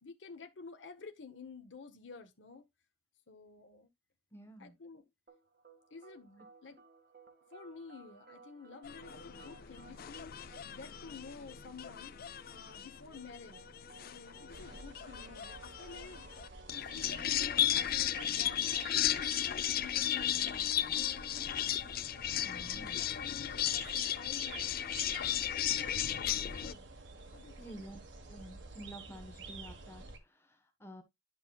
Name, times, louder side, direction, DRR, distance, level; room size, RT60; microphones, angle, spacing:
voice 1, 0.0-2.6 3.3-3.9 4.6-5.1 5.9-6.8 7.5-12.1 12.5-21.6 22.3-24.8 25.6-25.7 26.3-26.8 27.3-28.0, left 4 dB, 75° left, 1.0 m, -51 dB
voice 2, 4.3-4.7 22.4-23.0 27.6-28.0 28.3-31.0, right 1 dB, 15° left, 1.2 m, -50 dB
sound 1, 5.3-21.3, right 3 dB, 55° right, 1.7 m, -60 dB
sound 2, 8.8-26.7, left 11 dB, 55° left, 0.5 m, -35 dB
sound 3, 14.5-30.2, right 4 dB, 75° right, 1.3 m, -50 dB
11.0 x 5.5 x 2.3 m
head